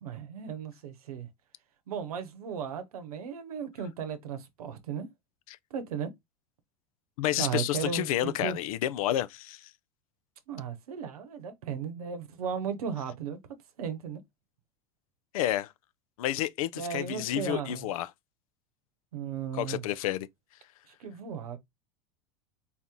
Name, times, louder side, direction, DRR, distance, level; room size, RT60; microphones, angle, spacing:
voice 1, 0.0-1.3 1.9-5.1 5.7-6.1 7.4-8.6 10.5-13.4 13.8-14.2 16.7-17.9 19.1-19.8 20.9-21.6, right 7 dB, 85° right, 0.9 m, -36 dB
voice 2, 7.2-9.6 15.3-15.7 16.2-18.1 19.5-20.3, left 13 dB, 75° left, 0.6 m, -30 dB
4.1 x 2.9 x 3.6 m
hypercardioid pair, 90°, 18 cm